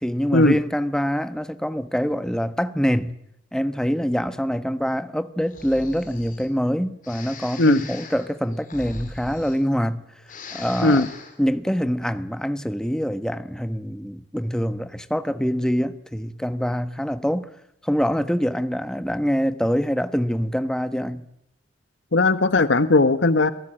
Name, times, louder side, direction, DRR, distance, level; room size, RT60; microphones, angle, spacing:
voice 1, 0.0-3.1 3.5-10.0 10.5-11.1 11.4-17.5 17.8-21.2, equal, 5° left, 1.1 m, -25 dB
Breathing, 5.5-6.5 7.0-10.0 10.2-11.4, left 3 dB, 45° left, 4.8 m, -40 dB
voice 2, 22.1-23.5, left 2 dB, 75° left, 1.1 m, -17 dB
27.5 x 18.5 x 8.8 m
head